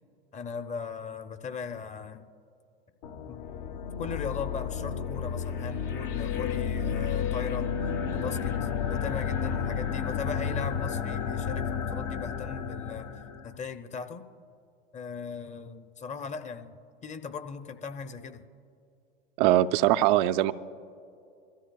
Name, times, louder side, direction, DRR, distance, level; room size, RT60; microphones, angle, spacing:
voice 1, 0.3-2.3 3.3-3.5 4.0-7.7 8.1-13.1 13.4-14.3 14.9-18.5, left 5 dB, 25° left, 9 dB, 0.8 m, -38 dB
sound 1, 3.0-13.5, left 7 dB, 60° left, 1.0 m, -31 dB
voice 2, 19.4-20.5, right 14 dB, 55° right, 13 dB, 0.5 m, -22 dB
24.0 x 14.5 x 2.4 m, 2.6 s
hypercardioid pair, 85°, 29 cm